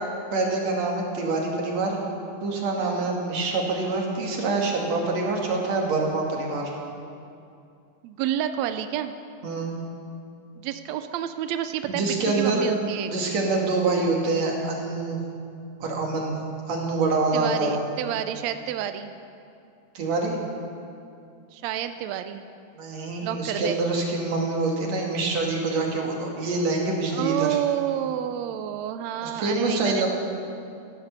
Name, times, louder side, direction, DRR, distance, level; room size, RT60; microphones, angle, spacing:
voice 1, 0.3-2.0 2.4-6.7 9.4-9.7 11.9-12.6 13.1-15.2 15.8-16.4 16.7-17.8 19.9-20.4 22.7-27.5 29.2-30.1, right 3 dB, 55° right, 0 dB, 3.1 m, -25 dB
voice 2, 2.8-3.1 5.0-5.1 8.0-9.1 10.6-13.1 17.3-19.1 21.5-22.4 23.2-23.8 27.1-30.1, right 11 dB, 80° right, 9 dB, 1.5 m, -29 dB
16.0 x 13.5 x 6.7 m, 2.5 s
omnidirectional pair, 3.8 m